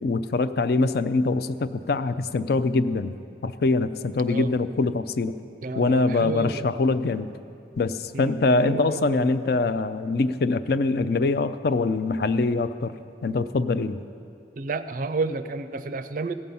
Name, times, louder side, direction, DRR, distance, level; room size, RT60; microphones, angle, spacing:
voice 1, 0.0-3.1 3.4-5.3 5.8-7.3 7.8-12.9 13.2-14.0, left 3 dB, 55° left, 12 dB, 0.4 m, -23 dB
voice 2, 5.6-6.7 8.1-8.4 8.6-9.3 14.6-16.3, right 3 dB, 50° right, 12 dB, 0.4 m, -31 dB
17.0 x 7.2 x 5.4 m, 2.5 s
head